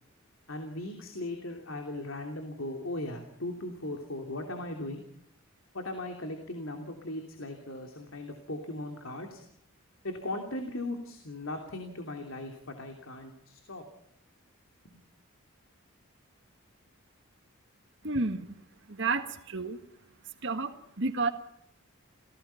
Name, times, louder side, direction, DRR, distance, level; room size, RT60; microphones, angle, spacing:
voice 1, 0.5-5.0 5.7-9.4 10.0-13.8, left 1 dB, 70° left, 4 dB, 3.0 m, -38 dB
voice 2, 18.0-18.5 18.9-19.8 20.2-21.3, right 3 dB, 60° right, 7 dB, 1.7 m, -31 dB
29.0 x 17.5 x 5.8 m, 0.75 s
head